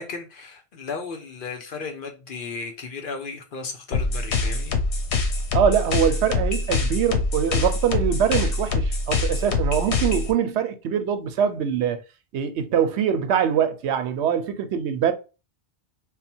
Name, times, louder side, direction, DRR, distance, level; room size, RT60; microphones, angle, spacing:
voice 1, 0.0-4.8, left 4 dB, 55° left, 0.9 m, -35 dB
sound 1, 3.9-10.3, left 3 dB, 80° left, 1.1 m, -24 dB
voice 2, 5.5-12.0 12.3-15.1, right 8 dB, 85° right, 0.9 m, -23 dB
3.6 x 2.1 x 4.3 m
omnidirectional pair, 1.1 m